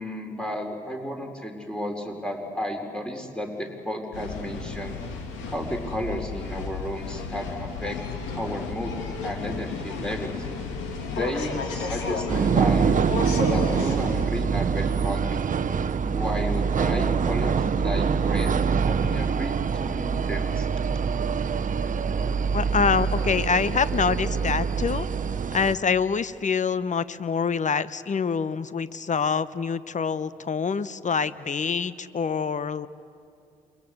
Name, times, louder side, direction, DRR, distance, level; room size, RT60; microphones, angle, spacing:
voice 1, 0.0-4.9 5.5-8.0 8.3-8.9 9.2-10.4 11.1-13.1 13.4-15.4 16.0-18.5 18.8-20.7, equal, 5° left, 2 dB, 4.5 m, -33 dB
sound 1, 4.1-14.3, left 4 dB, 75° left, 2.4 m, -33 dB
sound 2, 12.3-25.7, right 6 dB, 40° right, 1.0 m, -25 dB
voice 2, 22.5-25.1 25.5-32.9, left 6 dB, 40° left, 16 dB, 1.0 m, -25 dB
28.0 x 23.0 x 8.1 m, 2.5 s
hypercardioid pair, 40°, 20 cm